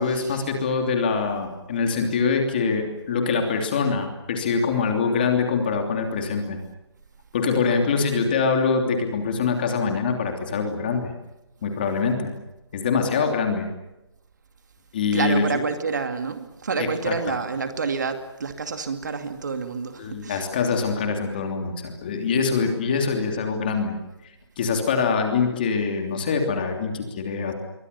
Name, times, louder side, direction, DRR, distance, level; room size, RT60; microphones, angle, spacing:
voice 1, 0.0-6.6 7.3-11.1 11.6-12.3 12.7-13.7 14.9-15.4 16.8-17.4 20.0-23.9 24.6-27.5, left 5 dB, 20° left, 4 dB, 3.0 m, -24 dB
voice 2, 15.1-20.4, right 5 dB, 40° right, 7 dB, 2.4 m, -28 dB
27.5 x 23.5 x 6.9 m, 0.99 s
hypercardioid pair, 180°, 14 cm